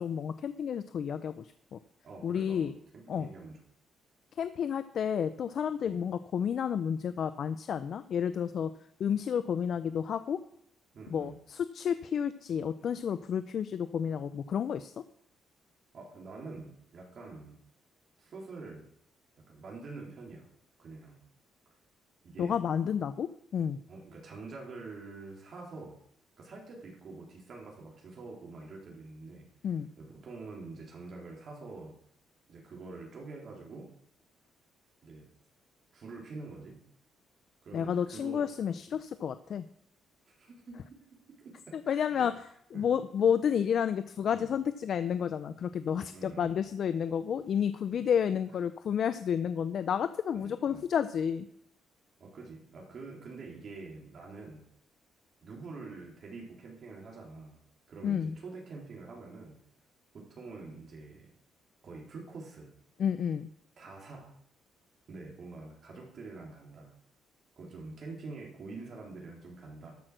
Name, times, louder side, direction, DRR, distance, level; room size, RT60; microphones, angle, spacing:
voice 1, 0.0-1.8 2.2-2.7 3.1-3.3 4.4-8.7 9.0-10.4 11.1-14.9 22.4-23.8 29.6-29.9 37.7-39.7 41.9-42.3 42.7-51.5 58.0-58.3 63.0-63.5, left 8 dB, 60° left, 12 dB, 0.5 m, -31 dB
voice 2, 2.0-3.6 5.8-6.0 10.9-11.3 15.9-17.6 18.2-18.9 19.4-20.5 20.8-21.2 22.2-22.6 23.9-26.0 26.4-29.5 30.0-32.0 32.5-33.9 35.0-35.3 35.9-36.8 37.6-38.5 40.3-42.3 42.7-42.9 44.3-44.5 46.1-46.5 47.9-48.1 50.3-50.8 52.2-54.6 55.4-57.6 57.9-59.6 60.1-61.3 61.8-62.7 63.8-64.3 65.1-66.9 67.6-70.0, right 3 dB, 55° right, -2 dB, 3.6 m, -46 dB
13.0 x 6.0 x 6.2 m, 0.69 s
cardioid pair, 90°, 0 cm